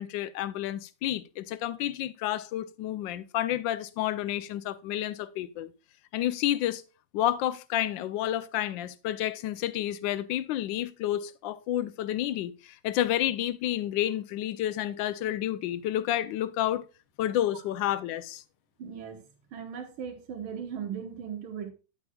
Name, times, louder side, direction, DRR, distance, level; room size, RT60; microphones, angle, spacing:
voice 1, 0.0-5.7 6.1-6.8 7.1-16.8 17.2-18.4, left 12 dB, 75° left, 1.2 m, -30 dB
voice 2, 18.8-19.2 19.5-21.7, right 7 dB, 85° right, 2.0 m, -38 dB
9.2 x 7.9 x 2.3 m
omnidirectional pair, 2.2 m